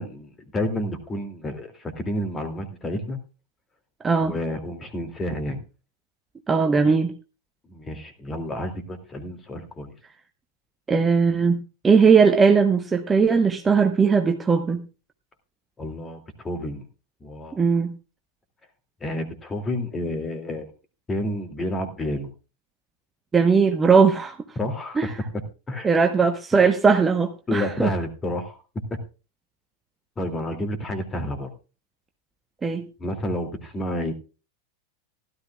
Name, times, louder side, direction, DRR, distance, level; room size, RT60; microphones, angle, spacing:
voice 1, 0.0-3.2 4.2-5.6 7.7-9.9 15.8-16.8 17.2-17.6 19.0-20.7 21.1-22.3 24.6-25.1 25.7-25.9 27.5-28.6 30.2-31.5 33.0-34.1, left 1 dB, 15° left, 7 dB, 2.5 m, -30 dB
voice 2, 4.0-4.3 6.5-7.1 10.9-14.8 17.6-17.9 23.3-24.4 25.0-25.1 25.8-27.9 32.6-32.9, right 5 dB, 15° right, 6 dB, 1.0 m, -19 dB
16.0 x 12.5 x 2.3 m, 0.32 s
figure-of-eight pair, 90°, 0 cm